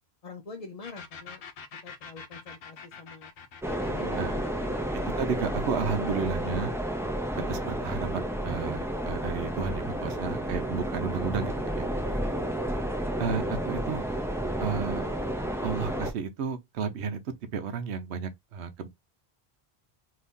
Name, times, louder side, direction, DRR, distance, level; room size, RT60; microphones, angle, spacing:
voice 1, 0.2-1.4 1.8-3.3 3.8-4.8 10.0-10.1 10.4-10.6 11.8-12.5, left 4 dB, 45° left, 0.6 m, -46 dB
sound 1, 0.8-8.3, left 6 dB, 80° left, 0.9 m, -47 dB
sound 2, 3.6-16.1, right 1 dB, 5° right, 0.3 m, -31 dB
voice 2, 5.2-6.7 7.5-11.9 13.2-14.0 14.6-15.1 15.6-17.2 17.5-18.9, right 6 dB, 90° right, 0.9 m, -32 dB
2.8 x 2.7 x 3.5 m
omnidirectional pair, 1.1 m